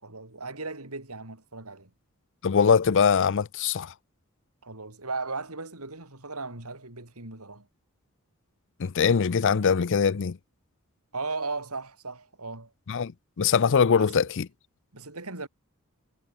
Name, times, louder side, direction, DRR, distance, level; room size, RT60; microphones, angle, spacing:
voice 1, 0.0-1.9 4.6-7.7 11.1-12.7 13.9-14.3 14.9-15.5, right 3 dB, 85° right, 4.9 m, -37 dB
voice 2, 2.4-3.9 8.8-10.4 12.9-13.1 13.4-14.5, left 6 dB, 60° left, 0.5 m, -22 dB
head